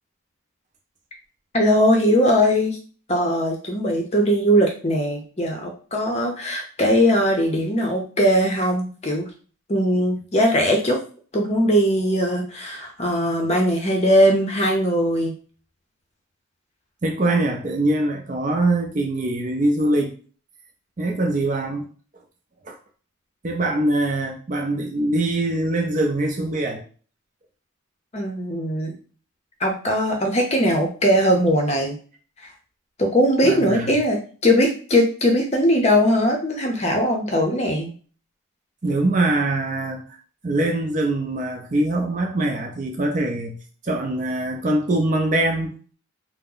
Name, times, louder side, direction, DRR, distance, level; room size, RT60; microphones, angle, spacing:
voice 1, 1.5-2.8 3.1-9.2 9.7-11.0 11.3-15.3 28.1-28.9 29.6-32.0 33.0-37.9, equal, 30° left, 0.6 m, -20 dB
voice 2, 17.0-20.2 21.0-21.9 22.7-22.8 23.4-26.8 33.4-34.0 38.8-40.0 40.4-45.7, right 2 dB, 35° right, 0.5 m, -23 dB
2.8 x 2.1 x 3.8 m
head